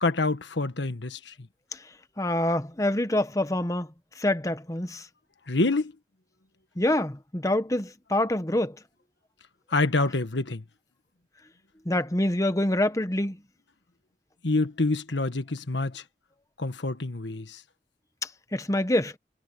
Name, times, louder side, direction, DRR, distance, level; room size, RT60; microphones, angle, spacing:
voice 1, 0.0-1.3 5.5-5.9 9.7-10.6 14.4-16.0 16.6-17.6, left 2 dB, 90° left, 1.5 m, -27 dB
voice 2, 2.2-3.9 4.2-5.1 6.8-8.8 11.8-13.4 18.2-19.2, left 1 dB, 20° left, 1.0 m, -26 dB
head